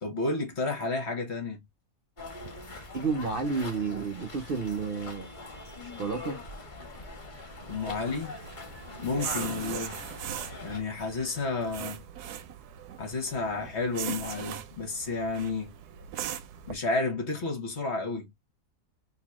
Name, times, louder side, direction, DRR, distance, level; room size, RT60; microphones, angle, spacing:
voice 1, 0.0-1.6 7.7-8.3 9.0-10.0 10.6-12.0 13.0-15.7 16.7-18.3, left 3 dB, 45° left, 1.4 m, -31 dB
sound 1, 2.2-10.8, left 3 dB, 30° left, 1.7 m, -42 dB
voice 2, 2.9-5.3 5.8-6.4, right 4 dB, 50° right, 0.7 m, -31 dB
sound 2, 7.6-16.7, right 10 dB, 80° right, 1.1 m, -40 dB
4.0 x 2.8 x 3.0 m
omnidirectional pair, 1.7 m